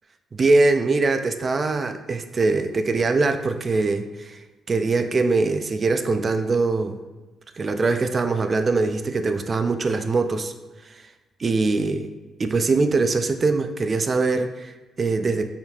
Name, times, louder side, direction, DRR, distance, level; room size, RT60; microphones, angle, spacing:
voice 1, 0.3-4.4 4.7-7.0 7.6-10.5 11.4-12.1 12.4-15.4, right 3 dB, 35° right, 8 dB, 0.3 m, -22 dB
4.4 x 3.5 x 2.3 m, 1.2 s
cardioid pair, 90°, 0 cm